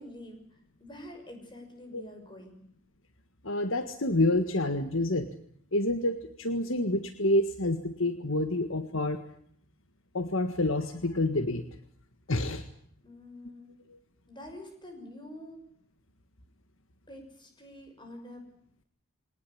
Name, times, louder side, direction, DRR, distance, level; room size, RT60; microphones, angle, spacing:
voice 1, 0.0-2.6 12.4-12.6 13.0-13.7 14.3-15.6 17.1-18.5, left 1 dB, 20° left, 5 dB, 6.3 m, -47 dB
voice 2, 3.4-5.3 5.7-9.2 10.1-11.6 12.3-12.6, left 1 dB, 60° left, 10 dB, 1.7 m, -28 dB
22.5 x 19.0 x 9.9 m, 0.63 s
head